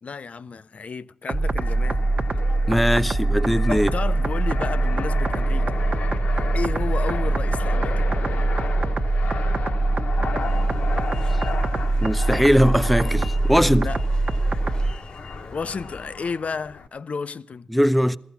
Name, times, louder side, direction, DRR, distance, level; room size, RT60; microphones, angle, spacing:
voice 1, 0.0-2.0 3.7-5.8 6.5-8.1 13.7-14.0 15.5-17.7, left 5 dB, 60° left, 0.6 m, -32 dB
sound 1, 1.3-14.9, right 2 dB, 60° right, 1.2 m, -23 dB
Fixed-wing aircraft airplane, 1.6-16.9, left 5 dB, 80° left, 1.1 m, -35 dB
voice 2, 2.7-3.9 12.0-13.9 17.7-18.2, equal, ahead, 0.7 m, -20 dB
sound 2, 10.3-16.3, left 2 dB, 35° left, 1.0 m, -42 dB
15.0 x 14.0 x 5.8 m
cardioid pair, 50°, 3 cm